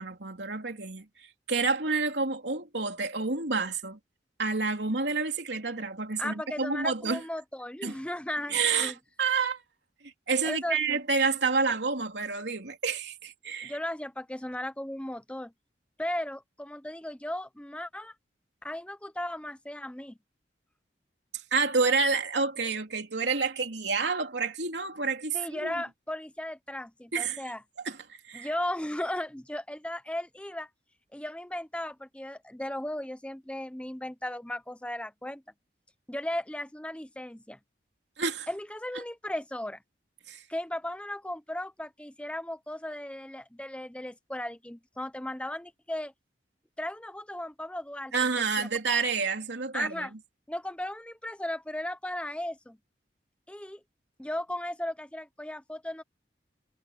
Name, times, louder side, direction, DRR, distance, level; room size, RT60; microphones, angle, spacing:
voice 1, 0.0-4.0 4.4-7.2 7.8-7.9 8.5-9.6 10.0-13.8 21.3-25.7 27.1-27.4 27.8-28.5 38.2-38.5 40.3-40.4 48.1-50.1, right 4 dB, 80° right, 3.1 m, -29 dB
voice 2, 6.2-8.9 10.4-11.0 13.6-15.5 16.0-18.1 18.6-20.1 25.3-27.6 28.3-30.7 31.1-35.4 36.1-37.6 38.5-39.8 40.5-46.1 46.8-48.7 49.7-50.1 50.5-52.8 53.5-53.8 54.2-56.0, left 1 dB, 5° left, 0.8 m, -36 dB
head